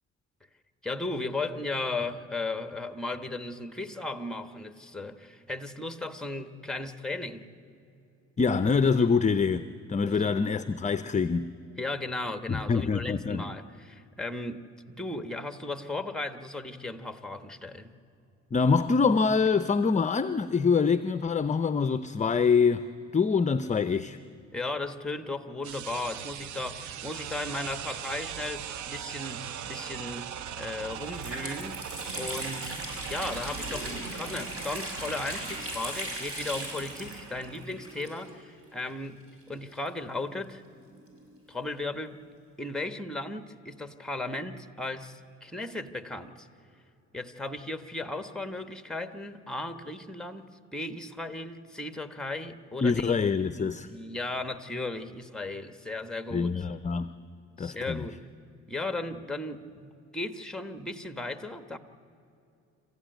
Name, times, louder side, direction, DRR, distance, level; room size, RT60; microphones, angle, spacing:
voice 1, 0.8-7.5 10.0-10.4 11.8-18.0 24.5-31.9 32.1-32.8 33.1-39.2 39.5-40.6 41.5-42.2 42.6-46.5 47.1-56.6 57.6-58.2 58.7-61.8, left 2 dB, ahead, 1.2 m, -36 dB
voice 2, 8.4-11.5 12.5-13.5 18.5-22.9 23.1-24.2 52.8-53.9 56.3-57.1 57.6-58.0, left 5 dB, 25° left, 0.5 m, -25 dB
sound 1, 25.6-37.7, right 9 dB, 70° right, 0.8 m, -40 dB
Water tap faucet, 30.3-30.4 30.8-38.5 38.8-38.9 39.7-41.3, right 1 dB, 45° right, 6.9 m, -38 dB
27.0 x 15.0 x 9.2 m
cardioid pair, 90°, 30 cm